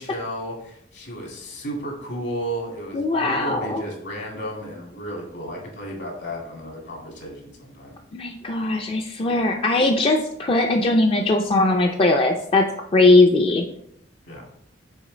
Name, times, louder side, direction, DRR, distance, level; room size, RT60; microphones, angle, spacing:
voice 1, 0.0-8.0 14.2-14.4, equal, 70° left, -1 dB, 2.1 m, -33 dB
voice 2, 2.9-3.8 8.1-12.6 12.9-13.6, left 2 dB, 30° left, 3 dB, 0.4 m, -19 dB
6.3 x 3.9 x 3.8 m, 0.74 s
head